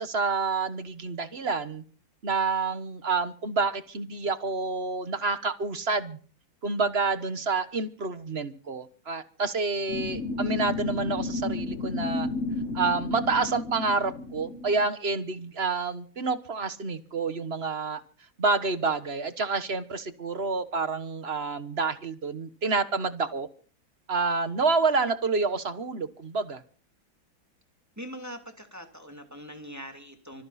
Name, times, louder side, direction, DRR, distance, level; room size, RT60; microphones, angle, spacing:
voice 1, 0.0-1.8 2.2-6.2 6.6-12.3 12.7-18.0 18.4-23.5 24.1-26.6, right 4 dB, 35° right, 12 dB, 1.3 m, -28 dB
sound 1, 9.9-14.9, left 2 dB, 50° left, 1.0 m, -32 dB
voice 2, 28.0-30.4, equal, 10° right, 5 dB, 2.5 m, -42 dB
26.0 x 10.5 x 4.3 m, 0.43 s
omnidirectional pair, 2.2 m